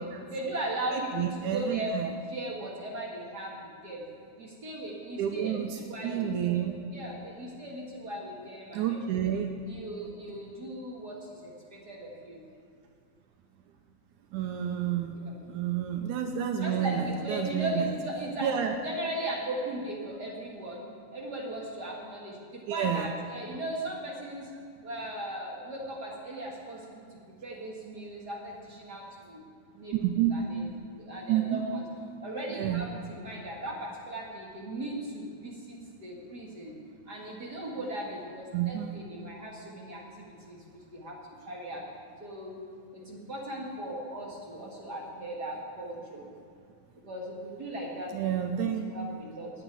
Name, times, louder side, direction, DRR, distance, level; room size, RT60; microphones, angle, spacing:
voice 1, 0.3-1.9 2.3-4.0 4.4-6.6 6.9-9.0 9.7-12.4 15.1-15.4 16.6-18.5 18.8-24.5 24.8-27.0 27.4-29.4 29.8-29.9 30.3-30.6 30.9-31.8 32.2-36.8 37.1-41.2 41.5-41.8 42.2-42.6 42.9-46.2 47.0-48.1 48.8-49.5, right 1 dB, 40° right, -3 dB, 1.8 m, -38 dB
voice 2, 0.9-2.1 5.2-6.7 8.7-9.5 14.3-15.2 15.5-17.9 18.4-18.7 22.7-23.1 30.0-30.3 31.3-31.6 32.6-32.8 38.5-39.0 48.1-48.9, right 10 dB, 80° right, 4 dB, 2.2 m, -29 dB
10.5 x 10.0 x 9.1 m, 2.4 s
omnidirectional pair, 3.6 m